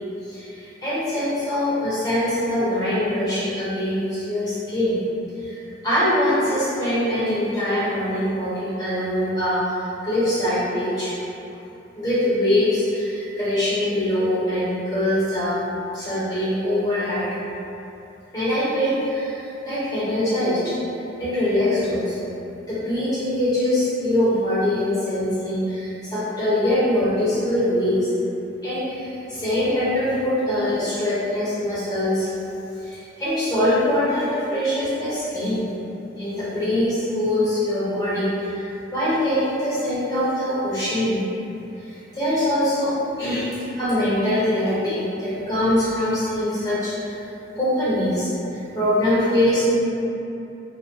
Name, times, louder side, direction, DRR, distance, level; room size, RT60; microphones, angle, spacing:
voice 1, 0.3-5.0 5.4-9.6 10.0-11.1 12.0-15.6 15.9-17.3 18.3-20.7 21.2-22.3 22.7-28.1 28.6-32.3 32.8-35.7 36.2-41.2 41.8-43.5 43.7-47.2 47.6-48.3 48.7-49.8, left 1 dB, 20° left, -12 dB, 0.9 m, -23 dB
2.7 x 2.1 x 3.2 m, 2.8 s
head